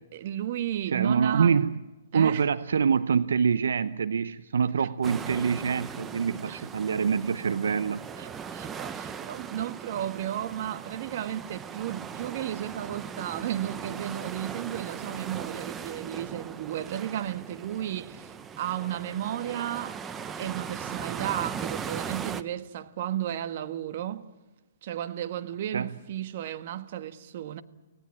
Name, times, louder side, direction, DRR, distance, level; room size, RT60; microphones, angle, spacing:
voice 1, 0.1-1.6 2.1-2.4 4.8-4.9 6.5-6.6 8.2-18.3 18.6-20.0 20.4-24.3 24.8-27.6, right 11 dB, 50° right, 1.4 m, -33 dB
voice 2, 0.9-1.8 2.1-8.0 25.7-25.9, right 6 dB, 75° right, 0.7 m, -25 dB
sound 1, 5.0-22.4, right 7 dB, 15° right, 1.0 m, -39 dB
25.0 x 18.5 x 8.7 m
hypercardioid pair, 130°, 0 cm